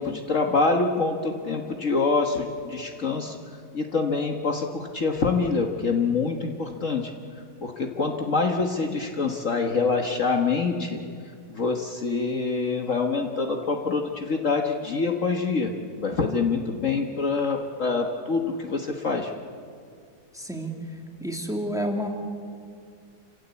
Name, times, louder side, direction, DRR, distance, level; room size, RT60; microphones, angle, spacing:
voice 1, 0.0-3.4 3.7-7.1 7.6-11.0 11.5-15.7 16.0-19.3, left 4 dB, 50° left, 3 dB, 1.7 m, -25 dB
voice 2, 20.3-20.7 21.2-22.1, equal, ahead, 2 dB, 2.4 m, -29 dB
28.5 x 17.0 x 8.4 m, 2.2 s
omnidirectional pair, 1.8 m